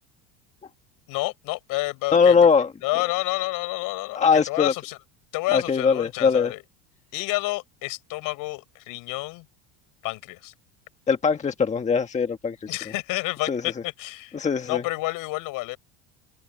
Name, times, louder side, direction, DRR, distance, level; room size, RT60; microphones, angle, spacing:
voice 1, 1.1-2.4 2.8-5.0 5.3-6.6 7.1-9.4 10.0-10.5 12.7-14.4 14.7-15.8, left 21 dB, 60° left, 7.4 m, -29 dB
voice 2, 2.1-2.7 4.1-4.7 5.5-6.5 11.1-12.7 13.5-13.6 14.3-14.8, left 5 dB, 20° left, 1.6 m, -21 dB
cardioid pair, 135°, 36 cm